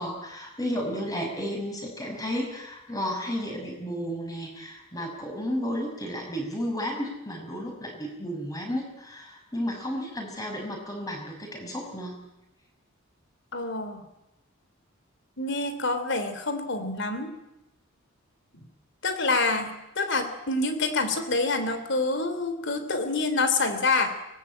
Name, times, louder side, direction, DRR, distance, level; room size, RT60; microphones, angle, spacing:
voice 1, 0.0-12.2, equal, 15° left, 2 dB, 6.1 m, -33 dB
voice 2, 13.5-14.0 15.4-17.3 18.5-18.7 19.0-24.1, left 3 dB, 55° left, 9 dB, 3.2 m, -27 dB
24.0 x 19.5 x 8.9 m, 0.92 s
head